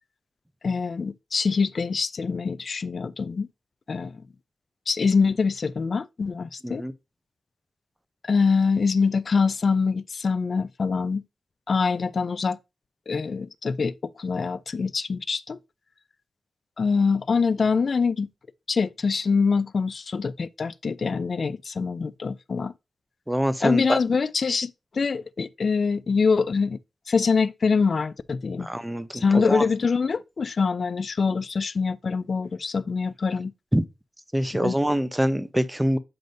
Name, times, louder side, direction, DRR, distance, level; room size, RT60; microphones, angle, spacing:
voice 1, 0.6-3.5 3.9-4.2 4.9-6.8 8.3-11.2 11.7-12.6 13.1-15.6 16.8-18.3 18.7-22.7 23.6-26.8 27.1-28.7 29.1-33.5 34.5-34.7, left 5 dB, 50° left, 0.4 m, -24 dB
voice 2, 23.3-24.0 28.6-29.6 33.7-33.8 34.3-36.0, equal, 5° right, 0.6 m, -24 dB
7.8 x 2.6 x 5.1 m
wide cardioid pair, 95°, 0 cm